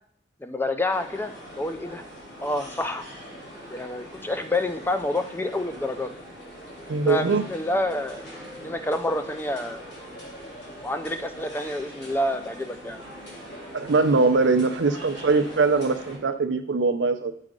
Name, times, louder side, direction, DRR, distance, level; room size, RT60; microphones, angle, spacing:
voice 1, 0.4-2.0 2.4-3.0 3.7-6.1 7.1-8.3 8.6-9.8 10.8-13.0, left 1 dB, 10° left, 8 dB, 0.4 m, -28 dB
sound 1, 0.9-16.2, equal, 70° left, 3.0 m, -42 dB
voice 2, 6.9-7.4 13.7-17.3, right 4 dB, 85° right, 8 dB, 0.6 m, -22 dB
7.5 x 5.0 x 3.7 m, 0.66 s
head